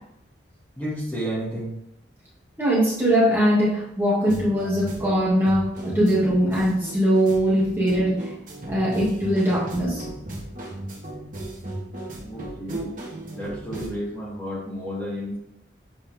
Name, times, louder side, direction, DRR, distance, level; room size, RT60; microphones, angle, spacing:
voice 1, 0.8-1.7 12.2-12.9 13.3-15.4, equal, 10° left, -8 dB, 1.9 m, -31 dB
voice 2, 2.6-8.2 8.7-10.0, equal, 10° right, -7 dB, 2.0 m, -21 dB
sound 1, 4.3-13.9, right 1 dB, 45° right, 1.6 m, -36 dB
7.6 x 4.2 x 3.5 m, 0.77 s
head